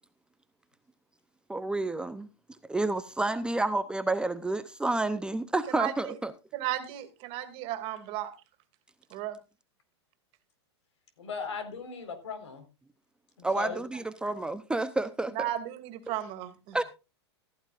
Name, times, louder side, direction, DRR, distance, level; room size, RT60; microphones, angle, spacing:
voice 1, 1.5-2.3 2.7-6.3 13.4-15.5 16.7-16.8, right 2 dB, 5° right, 0.7 m, -30 dB
voice 2, 5.7-6.1 6.5-8.3 9.1-9.4 15.3-16.8, right 13 dB, 40° right, 2.4 m, -34 dB
voice 3, 11.2-12.6 13.4-13.8, left 5 dB, 80° left, 4.5 m, -38 dB
15.0 x 14.5 x 2.5 m
hypercardioid pair, 125°, 15 cm